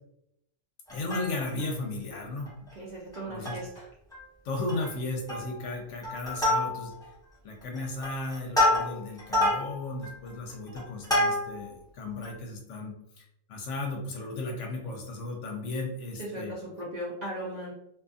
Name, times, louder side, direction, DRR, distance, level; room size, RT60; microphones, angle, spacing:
voice 1, 0.9-2.5 3.3-3.6 4.4-6.9 7.4-16.5, left 2 dB, 70° left, 1 dB, 0.9 m, -35 dB
Plucked string instrument, 0.9-1.7 2.1-2.2 2.5-2.7 3.1-3.8 4.1-4.2 4.6-4.9 5.3-5.7 6.0-7.1 7.6-11.7 12.2-12.3, left 1 dB, 5° left, 0.6 m, -28 dB
voice 2, 2.8-3.9 16.2-17.7, right 1 dB, 50° right, -6 dB, 0.5 m, -37 dB
2.5 x 2.4 x 2.4 m, 0.78 s
omnidirectional pair, 1.3 m